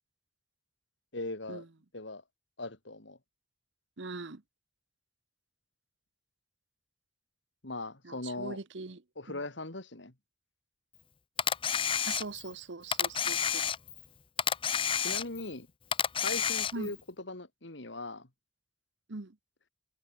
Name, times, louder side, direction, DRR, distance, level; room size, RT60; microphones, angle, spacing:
voice 1, 1.1-1.6 1.9-2.2 2.6-3.2 7.6-8.6 9.2-10.1 15.0-15.7 16.2-18.3, left 2 dB, 65° left, 2.5 m, -39 dB
voice 2, 4.0-4.4 8.0-9.0 9.3-9.4 12.1-13.6 16.7-16.9 19.1-19.4, right 3 dB, 65° right, 1.0 m, -41 dB
Camera, 11.4-12.5 12.9-14.1 14.4-15.5 15.9-17.0, left 8 dB, 25° left, 0.5 m, -30 dB
open air
head